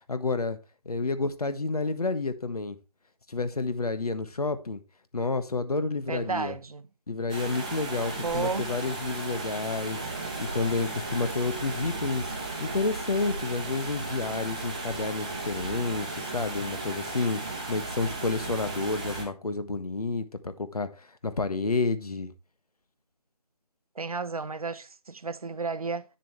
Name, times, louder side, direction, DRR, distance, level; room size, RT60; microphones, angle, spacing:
voice 1, 0.1-0.6 0.8-2.7 3.3-4.8 5.1-6.5 7.1-10.0 10.4-12.3 12.6-22.3, left 3 dB, 70° left, 1.4 m, -30 dB
voice 2, 6.1-6.9 8.2-8.7 24.0-26.0, right 4 dB, 65° right, 0.8 m, -32 dB
sound 1, 7.3-19.2, right 2 dB, 10° right, 1.0 m, -35 dB
9.5 x 7.3 x 3.1 m
figure-of-eight pair, 170°, 20 cm